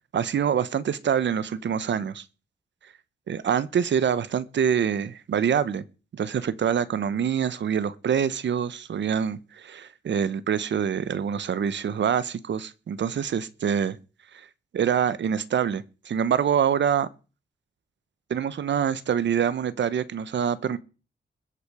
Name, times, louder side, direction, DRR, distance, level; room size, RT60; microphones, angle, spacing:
voice 1, 0.1-2.2 3.3-5.8 6.1-14.0 14.3-14.4 14.7-17.1 18.3-20.8, right 8 dB, 80° right, 1.0 m, -25 dB
21.0 x 8.4 x 4.9 m
wide cardioid pair, 170°, 18 cm